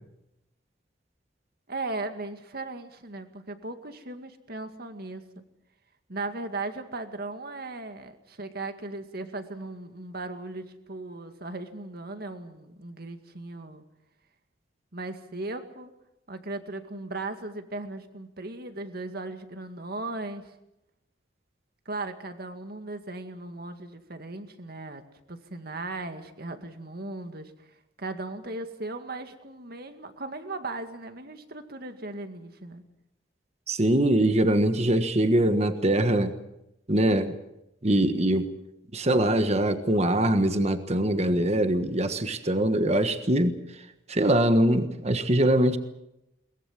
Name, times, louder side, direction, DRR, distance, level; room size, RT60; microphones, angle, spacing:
voice 1, 1.7-5.4 6.1-13.8 14.9-15.9 16.3-20.5 21.9-25.0 25.3-27.5 28.0-32.8, right 2 dB, 55° right, 8 dB, 2.1 m, -37 dB
voice 2, 33.7-36.3 36.9-37.3 37.8-38.5 38.9-43.5 44.1-45.8, right 1 dB, 35° right, 9 dB, 1.4 m, -23 dB
22.5 x 21.0 x 7.5 m, 0.87 s
head